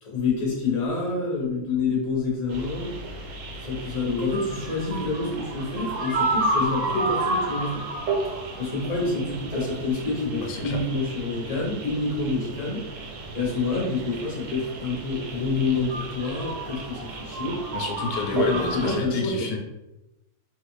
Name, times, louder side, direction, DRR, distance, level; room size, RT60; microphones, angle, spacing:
voice 1, 0.0-2.9 3.6-7.8 8.2-12.9 13.3-17.6 18.3-19.5, left 3 dB, 30° left, -4 dB, 0.8 m, -27 dB
sound 1, 2.5-19.0, right 2 dB, 65° right, 0.8 m, -31 dB
voice 2, 10.4-10.8 17.7-19.6, left 4 dB, 85° left, 2 dB, 1.2 m, -30 dB
3.0 x 2.4 x 3.1 m, 0.95 s
omnidirectional pair, 1.7 m